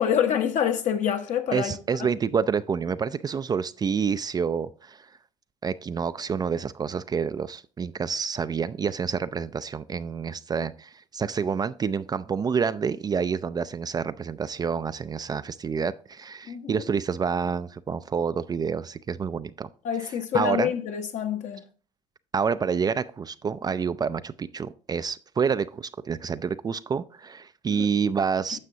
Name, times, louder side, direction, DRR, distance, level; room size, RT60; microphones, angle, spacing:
voice 1, 0.0-1.8 16.5-16.7 19.8-21.6 27.7-27.9, left 8 dB, 55° left, 1.1 m, -26 dB
voice 2, 1.5-5.1 5.6-19.7 20.0-20.7 22.3-28.6, right 6 dB, 25° right, 0.4 m, -28 dB
9.6 x 6.7 x 2.8 m
hypercardioid pair, 75°, 15 cm